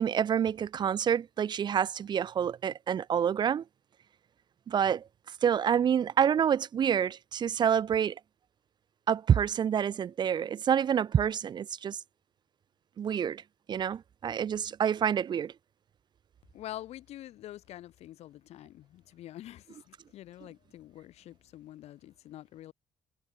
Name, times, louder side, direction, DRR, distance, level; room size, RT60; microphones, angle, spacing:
voice 1, 0.0-3.6 4.7-5.0 5.4-8.2 9.1-12.0 13.0-13.4 13.7-15.5, right 8 dB, 40° right, 0.7 m, -27 dB
voice 2, 16.5-22.7, left 13 dB, 70° left, 2.1 m, -46 dB
cardioid pair, 125°, 11 cm